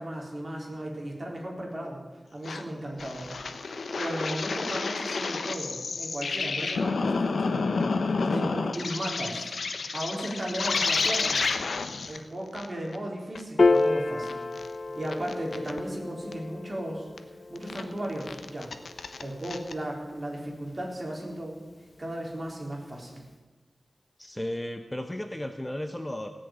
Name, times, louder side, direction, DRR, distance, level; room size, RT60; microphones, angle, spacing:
voice 1, 0.0-2.0 2.3-3.4 4.0-9.5 9.9-11.4 12.1-14.4 15.0-17.1 17.5-18.7 19.2-21.6 22.0-23.2, right 1 dB, 35° right, -1 dB, 4.1 m, -35 dB
sound 1, 2.4-2.6 3.0-12.2 12.5-12.6 12.9-13.0 13.3-13.4 13.8-13.9 14.2-14.7 15.1-15.8 16.3-16.4 17.2-17.3 17.5-17.8 18.2-19.7, left 4 dB, 80° left, 0.9 m, -30 dB
Piano, 13.6-20.2, left 3 dB, 45° left, 0.6 m, -30 dB
voice 2, 24.2-26.3, left 1 dB, 15° left, 7 dB, 0.8 m, -34 dB
17.5 x 6.7 x 9.0 m, 1.2 s
wide cardioid pair, 100°, 0 cm